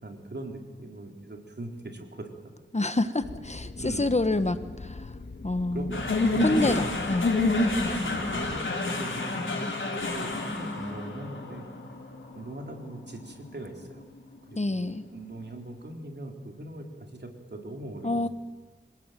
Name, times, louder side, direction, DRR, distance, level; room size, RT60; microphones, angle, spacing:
voice 1, 0.0-2.3 3.8-4.2 5.7-6.8 7.8-9.7 10.0-11.7 12.3-14.0 14.5-18.3, right 2 dB, 65° right, 3 dB, 3.9 m, -40 dB
voice 2, 2.7-5.1 5.4-6.0 6.4-7.3 9.6-9.7 14.6-15.0 18.0-18.3, left 2 dB, 35° left, 11 dB, 1.3 m, -27 dB
sound 1, 3.2-8.6, left 3 dB, 60° left, 2.4 m, -42 dB
sound 2, 5.9-14.3, left 2 dB, 90° left, 3.9 m, -29 dB
26.5 x 18.0 x 9.3 m, 1.3 s
wide cardioid pair, 60°, 19 cm